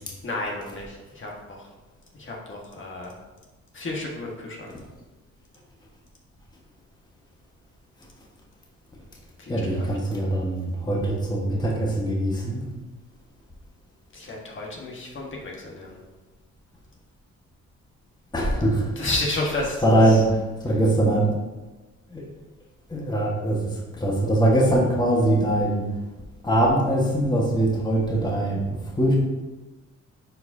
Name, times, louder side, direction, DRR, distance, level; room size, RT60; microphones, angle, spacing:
voice 1, 0.2-1.7 2.1-3.1 3.7-4.7 9.4-9.8 14.1-16.0 18.9-20.2, left 2 dB, 40° left, -2 dB, 1.6 m, -32 dB
voice 2, 9.5-12.6 18.3-19.0 19.8-20.3 20.6-21.3 22.1-22.2 22.9-25.9 26.4-29.1, right 1 dB, 15° left, -2 dB, 1.4 m, -22 dB
10.5 x 4.9 x 2.8 m, 1.2 s
cardioid pair, 90°, 30 cm